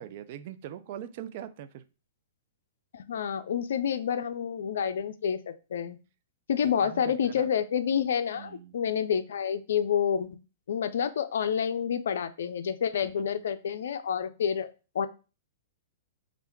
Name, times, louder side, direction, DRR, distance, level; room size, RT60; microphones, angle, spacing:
voice 1, 0.0-1.8 6.6-7.5 8.4-8.7 13.0-13.1, right 11 dB, 50° right, 11 dB, 0.4 m, -42 dB
voice 2, 2.9-6.0 6.5-10.3 10.7-14.7 14.9-15.1, left 8 dB, 70° left, 11 dB, 0.4 m, -28 dB
3.3 x 2.5 x 4.5 m, 0.32 s
hypercardioid pair, 115°, 0 cm